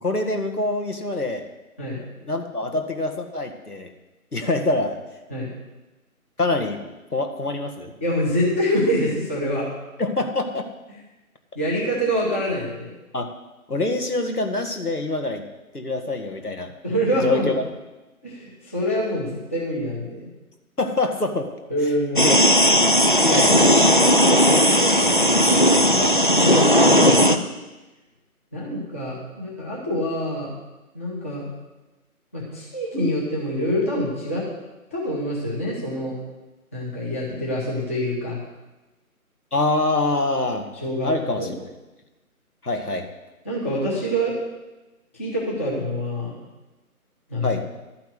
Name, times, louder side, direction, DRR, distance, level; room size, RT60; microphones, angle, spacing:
voice 1, 0.0-1.4 2.2-3.9 4.3-5.0 6.4-7.9 10.0-10.7 13.1-13.3 13.7-15.4 15.7-16.7 17.2-17.5 20.8-21.5 22.2-22.3 22.7-23.8 24.9-26.2 39.5-40.7 41.0-41.6 42.6-43.1 47.4-47.6, left 2 dB, 85° left, 5 dB, 1.9 m, -25 dB
voice 2, 8.0-9.7 11.5-12.9 16.8-17.5 18.2-20.3 21.7-22.4 26.1-27.2 28.5-30.5 30.9-31.5 32.3-34.4 34.9-36.1 36.7-38.4 40.8-41.1 41.4-41.5 43.4-44.4 45.1-46.4 47.3-47.5, equal, 10° left, -5 dB, 0.9 m, -25 dB
sound 1, 22.2-27.4, equal, 35° left, 0.5 m, -16 dB
12.0 x 5.9 x 8.0 m, 1.1 s
figure-of-eight pair, 150°, 44 cm